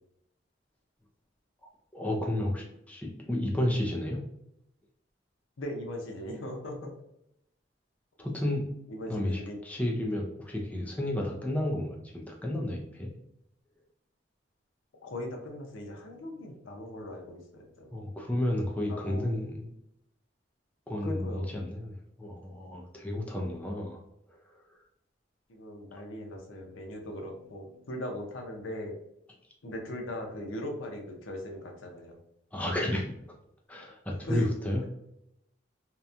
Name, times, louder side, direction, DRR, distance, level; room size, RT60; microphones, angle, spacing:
voice 1, 1.6-4.2 8.2-8.8 9.1-13.1 17.9-19.7 20.9-24.0 24.3-24.6 32.5-33.1 33.7-34.8, left 1 dB, 10° left, -1 dB, 0.3 m, -32 dB
voice 2, 5.6-6.9 8.9-9.6 15.0-17.9 18.9-19.3 21.0-21.5 25.5-29.0 29.6-32.2 34.1-34.5, left 1 dB, 90° left, 2 dB, 0.6 m, -39 dB
2.8 x 2.1 x 2.4 m, 0.79 s
head